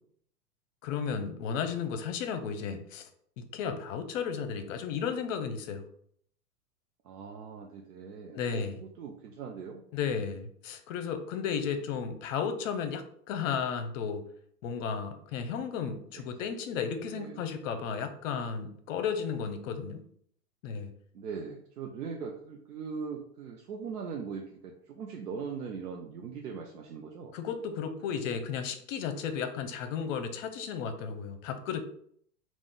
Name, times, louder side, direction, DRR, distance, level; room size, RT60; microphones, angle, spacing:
voice 1, 0.8-3.1 3.4-5.8 8.3-8.8 9.9-14.2 14.6-20.0 20.6-20.9 27.3-31.8, left 6 dB, 55° left, 8 dB, 0.7 m, -34 dB
voice 2, 7.0-9.8 17.0-17.4 21.1-27.4, right 6 dB, 75° right, 1 dB, 0.7 m, -40 dB
3.6 x 2.5 x 3.7 m, 0.64 s
hypercardioid pair, 100°, 46 cm